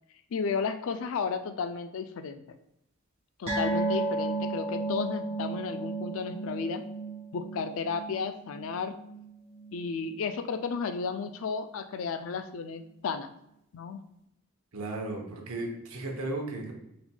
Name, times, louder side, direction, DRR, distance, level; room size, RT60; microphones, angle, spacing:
voice 1, 0.3-2.6 3.4-6.8 7.3-9.0 9.7-13.3 13.7-14.0, left 5 dB, 70° left, 9 dB, 0.3 m, -33 dB
sound 1, 3.5-10.3 10.5-10.8 11.1-11.2, right 2 dB, 30° right, 1.6 m, -34 dB
voice 2, 14.7-16.7, right 2 dB, 80° right, 1 dB, 0.8 m, -35 dB
4.2 x 4.2 x 2.2 m, 0.82 s
head